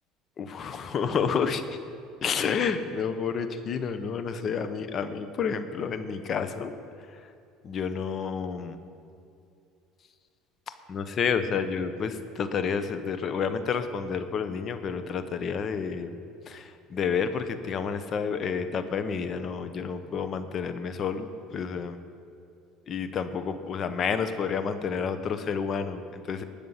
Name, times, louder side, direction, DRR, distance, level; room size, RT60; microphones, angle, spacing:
voice 1, 0.4-1.6 2.2-6.7 7.6-8.8 10.9-16.1 16.5-22.0 22.9-26.4, left 6 dB, 40° left, 10 dB, 0.9 m, -30 dB
19.0 x 6.8 x 5.8 m, 2.5 s
cardioid pair, 120°, 0 cm